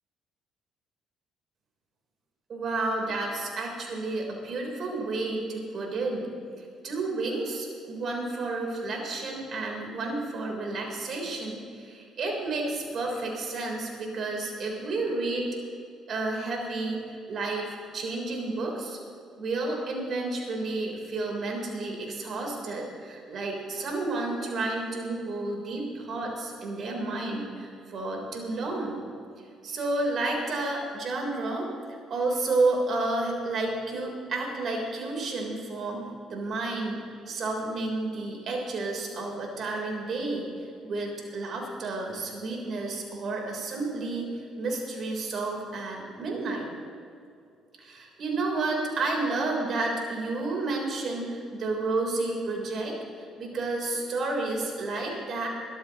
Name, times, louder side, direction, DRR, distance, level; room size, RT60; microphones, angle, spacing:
voice 1, 2.5-6.3 6.8-15.5 16.1-19.0 19.4-29.0 29.6-31.7 32.1-36.0 36.3-46.7 47.8-55.5, right 2 dB, 55° right, 0 dB, 3.7 m, -31 dB
21.0 x 13.5 x 3.0 m, 2.4 s
hypercardioid pair, 50°, 0 cm